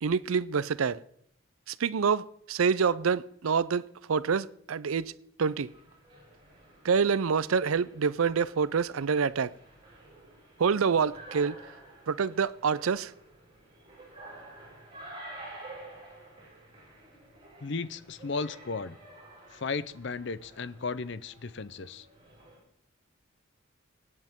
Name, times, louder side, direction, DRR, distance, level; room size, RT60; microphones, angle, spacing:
voice 1, 0.0-1.0 1.7-5.1 5.4-5.7 6.8-9.5 10.6-11.6 12.1-13.1, right 6 dB, 80° right, 0.5 m, -27 dB
sound 1, 5.4-22.6, right 2 dB, 25° right, 6.3 m, -50 dB
voice 2, 17.6-19.0 19.5-22.1, left 4 dB, 55° left, 0.6 m, -35 dB
25.0 x 9.6 x 3.7 m
head